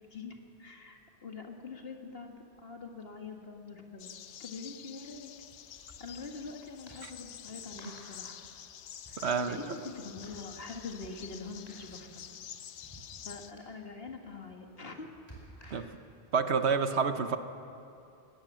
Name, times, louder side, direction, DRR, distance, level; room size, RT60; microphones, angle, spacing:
voice 1, 0.1-4.1 4.4-5.3 6.0-8.4 9.1-12.2 13.2-15.1 15.6-15.9, left 4 dB, 60° left, 3 dB, 2.1 m, -44 dB
sound 1, 3.1-3.2 3.4-3.5 5.0-16.2, right 1 dB, 20° left, 5.1 m, -57 dB
sound 2, 4.0-13.5, left 10 dB, 85° left, 1.0 m, -48 dB
voice 2, 9.2-9.6 15.7-15.9 16.3-17.4, right 5 dB, 75° right, 9 dB, 1.2 m, -28 dB
19.5 x 18.0 x 7.5 m, 2.6 s
omnidirectional pair, 1.1 m